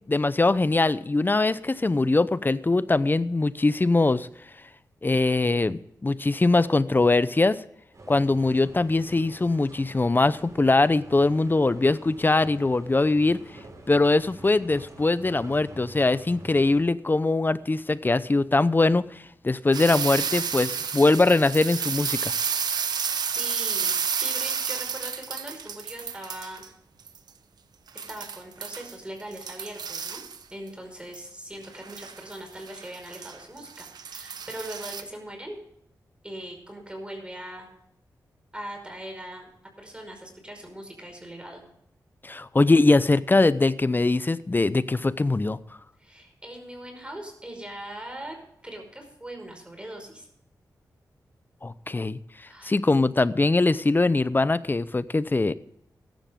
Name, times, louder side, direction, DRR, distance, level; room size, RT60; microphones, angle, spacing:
voice 1, 0.0-4.3 5.0-7.6 8.1-13.4 13.9-22.3 42.2-45.6 51.6-52.2 52.6-55.5, left 2 dB, 30° left, 16 dB, 0.7 m, -22 dB
sound 1, 7.9-16.8, right 2 dB, 50° right, 5.9 m, -47 dB
sound 2, 19.7-26.7 27.1-27.2 27.9-28.9 29.3-30.4 31.1-31.2 31.6-35.0, right 6 dB, 80° right, 1.1 m, -31 dB
voice 2, 23.1-26.7 27.9-30.2 30.5-35.6 36.2-37.7 38.5-39.5 39.8-41.6 46.0-48.4 48.6-50.3 52.5-52.7, right 1 dB, 15° right, 3 dB, 5.2 m, -40 dB
15.0 x 12.5 x 3.7 m, 0.76 s
cardioid pair, 60°, 7 cm